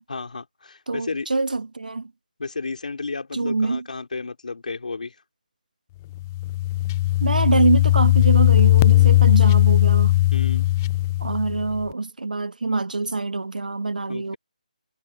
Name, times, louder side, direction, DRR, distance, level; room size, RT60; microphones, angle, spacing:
voice 1, 0.1-1.3 2.4-5.1 10.3-10.7 14.1-14.4, left 4 dB, 70° left, 3.4 m, -32 dB
voice 2, 0.9-2.1 3.3-3.8 7.2-10.1 11.2-14.4, right 3 dB, 85° right, 1.7 m, -24 dB
sound 1, 6.1-11.8, left 16 dB, 20° left, 0.3 m, -18 dB
figure-of-eight pair, 155°, 4 cm